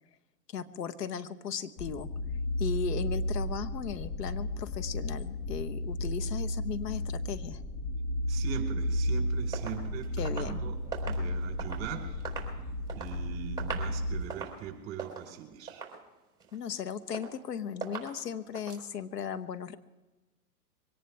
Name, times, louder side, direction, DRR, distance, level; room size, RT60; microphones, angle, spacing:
voice 1, 0.5-2.1 2.6-7.6 10.2-10.6 16.5-19.8, left 8 dB, 75° left, 10 dB, 1.3 m, -36 dB
sound 1, 1.8-14.2, equal, 35° left, 1.9 m, -33 dB
voice 2, 8.3-10.7 11.1-12.2 12.9-15.9, right 9 dB, 30° right, 2 dB, 4.6 m, -41 dB
sound 2, 9.5-11.9 12.2-13.2 13.5-13.9 14.2-14.6 15.0-15.3 15.7-16.0 16.4-16.8 17.1-17.5 17.8-18.2 18.5-18.9, right 6 dB, 10° right, 4.1 m, -40 dB
23.0 x 18.0 x 3.5 m, 1.2 s
hypercardioid pair, 130°, 48 cm